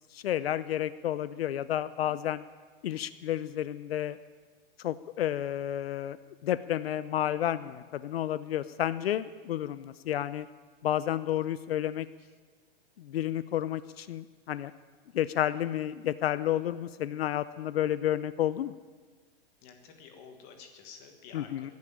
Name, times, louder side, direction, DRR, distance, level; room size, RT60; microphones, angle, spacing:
voice 1, 0.1-2.4 2.8-4.2 4.8-6.2 6.4-10.5 10.8-12.1 13.0-14.7 15.1-18.7 21.3-21.7, left 11 dB, 75° left, 15 dB, 0.6 m, -31 dB
voice 2, 19.6-21.7, left 6 dB, 20° left, 4 dB, 1.4 m, -51 dB
15.5 x 10.5 x 8.7 m, 1.4 s
hypercardioid pair, 180°, 30 cm